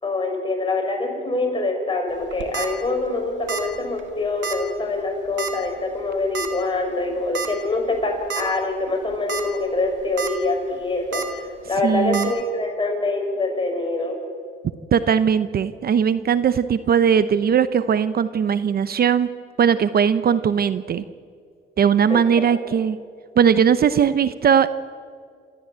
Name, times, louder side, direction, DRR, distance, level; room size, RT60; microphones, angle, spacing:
voice 1, 0.0-14.2 22.1-22.2, left 2 dB, 25° left, 2 dB, 6.4 m, -25 dB
sound 1, 2.2-2.7 3.5-3.7 4.0-4.1 4.4-4.6 5.4-5.7 6.3-6.5 7.3-7.5 7.9-8.0 8.3-8.4 9.1-9.4 9.8-10.3 11.1-11.3 12.1-12.3, right 6 dB, 70° right, 2.2 m, -28 dB
voice 2, 11.8-12.3 14.9-19.3 19.6-21.0 21.8-23.0 23.4-24.7, right 7 dB, 50° right, 13 dB, 0.8 m, -19 dB
27.5 x 14.0 x 8.7 m, 2.2 s
cardioid pair, 90°, 20 cm